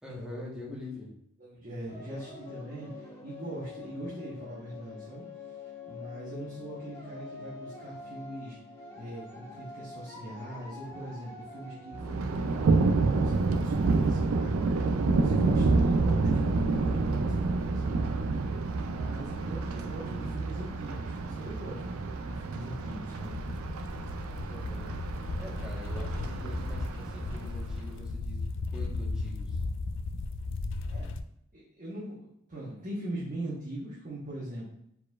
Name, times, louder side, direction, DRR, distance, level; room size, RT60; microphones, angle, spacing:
voice 1, 0.0-1.1 16.1-16.8 19.7-20.4 24.5-24.9 25.4-29.6, left 1 dB, 5° right, -4 dB, 1.1 m, -45 dB
voice 2, 1.4-5.2 5.9-8.6 9.0-18.0 18.8-23.4 30.8-31.1 31.5-34.6, right 1 dB, 40° right, -7 dB, 1.0 m, -41 dB
sound 1, 1.9-12.1, left 4 dB, 10° left, 1.4 m, -45 dB
Thunder, 11.9-27.9, right 3 dB, 75° right, 0.4 m, -28 dB
sound 2, 23.2-31.2, left 3 dB, 60° left, 0.3 m, -36 dB
4.4 x 4.2 x 2.3 m, 0.75 s
head